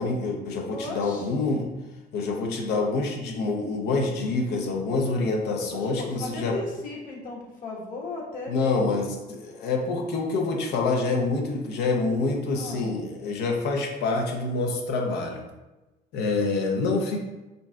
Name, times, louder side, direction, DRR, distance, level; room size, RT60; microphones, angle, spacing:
voice 1, 0.0-1.7 2.1-6.6 8.5-15.4 16.1-17.2, left 3 dB, 80° left, 2 dB, 0.6 m, -26 dB
voice 2, 0.7-1.3 5.6-9.0 12.5-12.9, left 2 dB, 55° left, -3 dB, 1.2 m, -36 dB
5.3 x 2.7 x 2.3 m, 1.1 s
cardioid pair, 110°, 17 cm